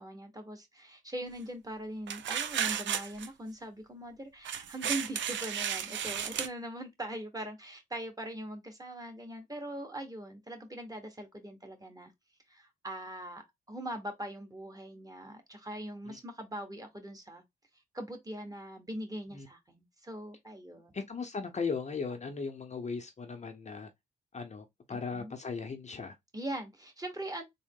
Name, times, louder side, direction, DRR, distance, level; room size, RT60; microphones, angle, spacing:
voice 1, 0.0-12.1 12.5-13.4 13.7-17.4 17.9-20.9 24.9-25.4 26.3-27.4, right 1 dB, 20° right, 1.3 m, -41 dB
sound 1, 2.1-3.3 4.4-6.5, right 9 dB, 70° right, 0.5 m, -33 dB
voice 2, 20.9-23.9 24.3-26.2, left 5 dB, 35° left, 0.7 m, -37 dB
3.6 x 2.0 x 3.7 m
cardioid pair, 70°, 20 cm